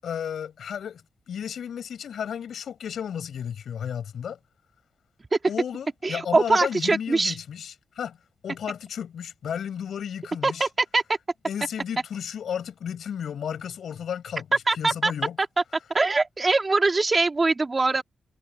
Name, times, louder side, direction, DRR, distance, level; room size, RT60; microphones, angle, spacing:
voice 1, 0.0-1.0 1.3-4.4 5.5-8.2 8.4-10.7 11.5-14.5 14.7-15.4, left 8 dB, 85° left, 7.2 m, -33 dB
voice 2, 6.0-7.4 10.4-11.0 14.7-15.1 15.9-18.0, right 3 dB, 35° right, 3.6 m, -22 dB
cardioid pair, 85°, 0 cm